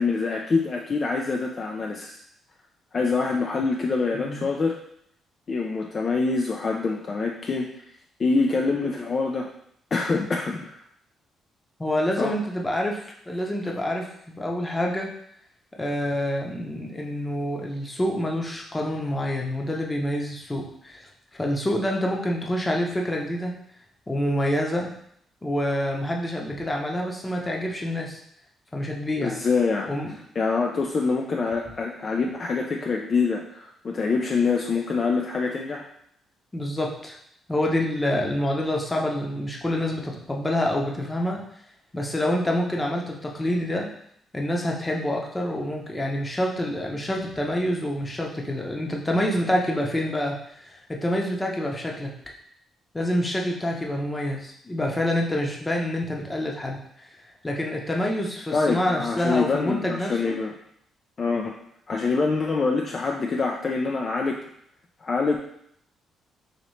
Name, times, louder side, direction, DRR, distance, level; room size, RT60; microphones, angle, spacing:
voice 1, 0.0-2.2 2.9-4.8 5.5-7.7 8.2-9.5 9.9-10.8 12.2-12.3 29.2-29.9 30.4-35.9 58.5-60.5 61.2-61.6 61.9-64.4 65.0-65.4, left 4 dB, 40° left, 1 dB, 0.4 m, -25 dB
voice 2, 4.1-4.5 11.8-15.1 15.8-23.5 24.1-24.9 25.4-28.2 28.7-29.4 29.9-30.1 36.5-37.2 37.5-41.4 41.9-43.9 44.3-52.1 52.9-57.1 57.4-60.4, left 1 dB, 15° left, 0 dB, 0.8 m, -27 dB
4.1 x 2.9 x 3.1 m, 0.70 s
cardioid pair, 90°, 0 cm